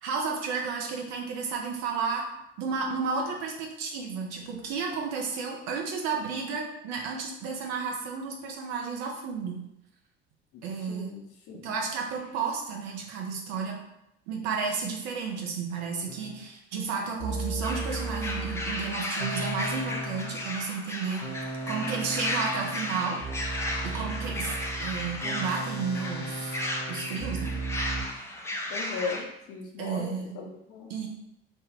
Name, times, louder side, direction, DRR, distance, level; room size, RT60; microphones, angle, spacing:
voice 1, 0.0-2.2 2.6-9.6 10.6-11.2 11.6-13.8 14.3-21.2 21.7-23.2 23.8-24.5 24.8-26.6 26.9-27.5 29.8-30.3 30.9-31.1, right 5 dB, 55° right, 1 dB, 0.7 m, -32 dB
voice 2, 10.9-11.7 28.7-30.9, left 5 dB, 45° left, 0 dB, 0.7 m, -37 dB
sound 1, 16.1-16.4 17.2-20.6 21.2-28.0, right 2 dB, 90° left, 0.5 m, -36 dB
sound 2, 17.6-29.2, left 1 dB, 10° left, 0.4 m, -35 dB
2.8 x 2.2 x 3.3 m, 0.83 s
figure-of-eight pair, 55°, 32 cm